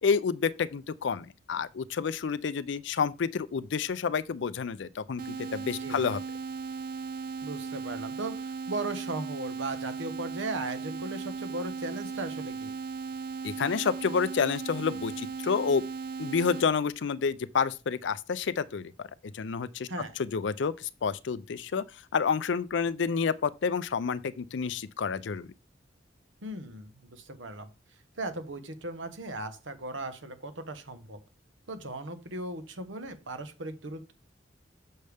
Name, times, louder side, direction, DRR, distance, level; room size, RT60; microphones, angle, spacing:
voice 1, 0.0-6.2 13.4-15.8 16.2-19.1 19.3-19.9 20.2-21.8 22.1-25.5, left 5 dB, 70° left, 0.4 m, -29 dB
sound 1, 5.2-16.6, right 4 dB, 50° right, 0.4 m, -37 dB
voice 2, 7.4-12.7 19.9-20.1 26.4-27.7 28.2-31.2 31.7-34.1, right 2 dB, 85° right, 1.1 m, -37 dB
6.6 x 6.4 x 3.4 m
head